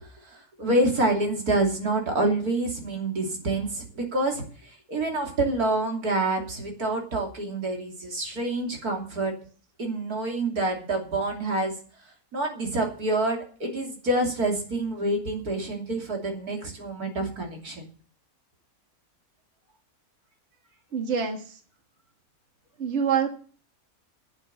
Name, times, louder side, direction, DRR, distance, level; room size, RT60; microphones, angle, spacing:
voice 1, 0.2-9.3 9.8-11.7 12.3-17.8, right 2 dB, 85° right, 1 dB, 3.4 m, -27 dB
voice 2, 20.9-21.5 22.8-23.3, right 7 dB, 50° right, 4 dB, 1.9 m, -26 dB
11.5 x 8.0 x 8.6 m, 0.42 s
omnidirectional pair, 1.6 m